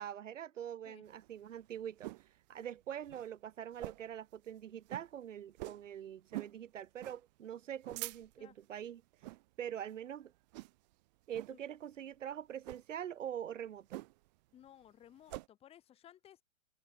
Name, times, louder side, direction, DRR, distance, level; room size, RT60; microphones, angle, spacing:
voice 1, 0.0-2.1 2.5-9.0 9.6-10.3 11.3-14.0, right 10 dB, 60° right, 2.2 m, -44 dB
sound 1, 1.1-2.3 2.7-2.8 3.0-3.3 3.7-4.2 4.5-4.6 4.9-5.1 5.6-5.9 6.3-6.6 7.0-7.2 7.6-8.5 9.1-9.4 9.9-10.1 10.5-10.9 11.3-11.6 12.6-12.9 13.9-14.4 14.7-15.5, right 20 dB, 30° right, 3.2 m, -46 dB
voice 2, 14.5-16.4, left 11 dB, 15° left, 5.1 m, -58 dB
hypercardioid pair, 165°, 41 cm